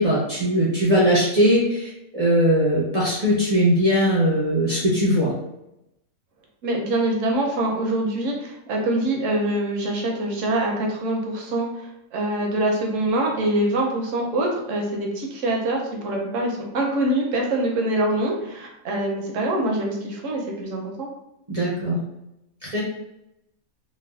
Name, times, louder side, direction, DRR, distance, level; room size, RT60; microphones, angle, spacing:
voice 1, 0.0-5.3 21.5-22.0 22.6-22.8, equal, 50° right, -7 dB, 0.4 m, -20 dB
voice 2, 6.6-21.1, right 1 dB, 70° right, 0 dB, 0.9 m, -24 dB
3.2 x 2.1 x 2.3 m, 0.87 s
omnidirectional pair, 1.5 m